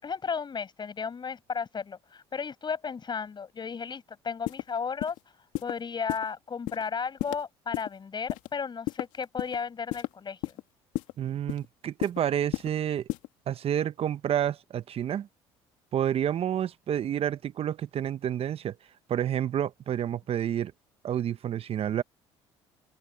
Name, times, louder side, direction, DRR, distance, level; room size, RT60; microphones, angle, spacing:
voice 1, 0.0-5.2 5.6-10.6, left 6 dB, 35° left, 6.6 m, -34 dB
sound 1, 4.5-4.6 5.0-5.2 5.5-5.7 6.1-6.2 6.7-6.8 7.2-7.4 7.7-7.9 8.3-8.5 8.9-9.6 9.9-10.1 10.4-10.6 11.0-11.1 11.5-11.7 12.0-12.2 12.5-12.7 13.1-13.3, left 18 dB, 75° left, 2.1 m, -31 dB
voice 2, 11.2-13.1 13.5-15.3 15.9-18.8 19.1-20.7 21.0-22.0, right 10 dB, 50° right, 0.9 m, -29 dB
open air
supercardioid pair, 70°, 13 cm